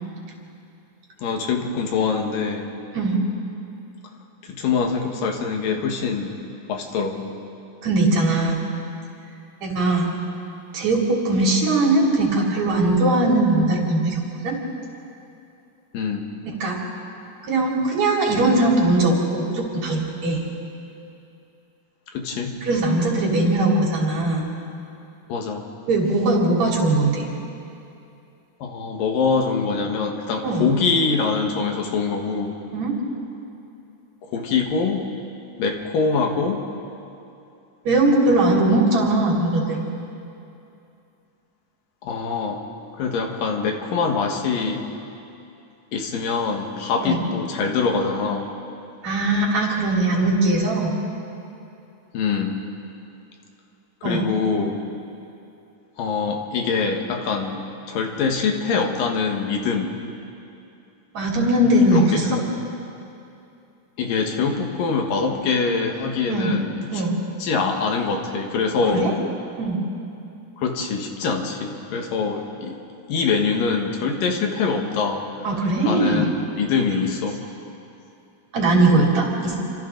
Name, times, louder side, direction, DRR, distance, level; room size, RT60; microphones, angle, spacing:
voice 1, 1.2-2.7 4.4-6.3 6.7-7.3 15.9-16.3 22.1-22.6 25.3-25.7 28.6-32.6 34.2-35.0 35.6-36.6 42.0-42.6 43.0-44.8 45.9-48.5 52.1-52.6 54.0-54.8 56.0-59.9 61.9-62.6 64.0-67.0 67.4-69.1 70.6-72.7 73.1-75.3 75.8-77.4, left 5 dB, 80° left, 2 dB, 3.3 m, -24 dB
voice 2, 7.8-8.6 9.6-10.1 10.7-14.6 16.6-16.8 17.5-20.4 22.6-24.5 25.9-27.2 30.4-30.7 32.7-32.9 37.9-39.8 47.0-47.2 49.0-50.9 54.0-54.2 61.1-62.4 66.3-66.5 66.9-67.2 68.9-69.1 69.6-69.8 75.4-76.2 78.5-79.6, right 2 dB, 55° right, -3 dB, 4.5 m, -20 dB
29.0 x 25.5 x 3.9 m, 2.7 s
omnidirectional pair, 3.8 m